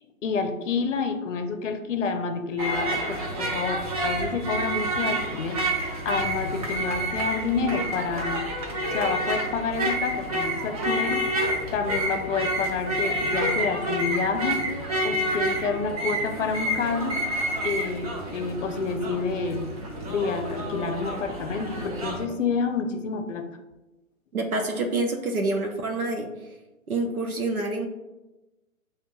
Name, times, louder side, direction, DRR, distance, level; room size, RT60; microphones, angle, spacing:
voice 1, 0.2-8.4 8.9-17.2 17.6-19.7 20.1-23.5, left 5 dB, 60° left, 8 dB, 0.6 m, -29 dB
sound 1, 2.6-22.3, right 1 dB, 30° right, 0.6 m, -29 dB
voice 2, 24.3-26.3 26.9-27.9, right 2 dB, 85° right, 2 dB, 0.8 m, -27 dB
6.9 x 2.6 x 2.5 m, 1.0 s
figure-of-eight pair, 130°, 43 cm